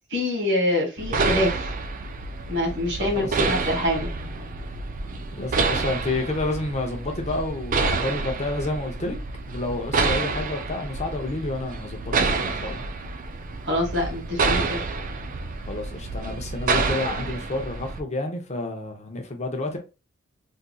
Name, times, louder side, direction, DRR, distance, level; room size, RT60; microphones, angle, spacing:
voice 1, 0.1-1.7 2.5-4.1 13.7-14.8, left 1 dB, 60° right, 1.7 m, -25 dB
sound 1, 1.0-18.0, right 3 dB, 45° right, 0.4 m, -28 dB
voice 2, 3.0-3.7 5.3-9.2 9.5-12.9 15.6-19.8, left 2 dB, 35° left, 0.7 m, -30 dB
3.6 x 2.6 x 2.3 m
head